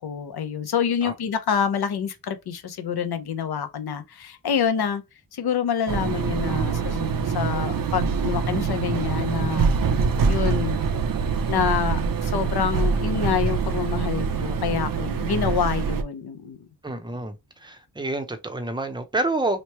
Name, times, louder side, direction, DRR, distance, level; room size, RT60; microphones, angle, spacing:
voice 1, 0.0-5.0 5.3-9.7 10.3-10.8 11.5-16.6, left 7 dB, 65° left, 0.7 m, -27 dB
sound 1, 5.9-16.0, right 5 dB, 55° right, 0.6 m, -24 dB
voice 2, 16.8-17.3 17.6-19.6, right 2 dB, 10° right, 0.6 m, -28 dB
3.1 x 2.2 x 4.2 m
wide cardioid pair, 105°, 41 cm